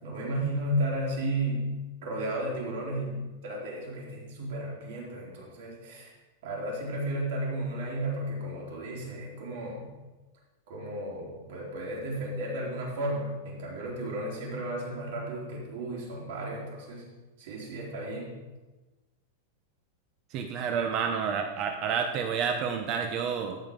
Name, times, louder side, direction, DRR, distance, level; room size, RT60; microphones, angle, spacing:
voice 1, 0.0-6.1 6.4-9.9 10.7-17.0 17.4-18.4, right 1 dB, 60° right, -3 dB, 3.8 m, -33 dB
voice 2, 20.3-23.6, right 6 dB, 35° right, 5 dB, 0.8 m, -29 dB
14.5 x 5.6 x 5.3 m, 1.2 s
supercardioid pair, 165°, 0 cm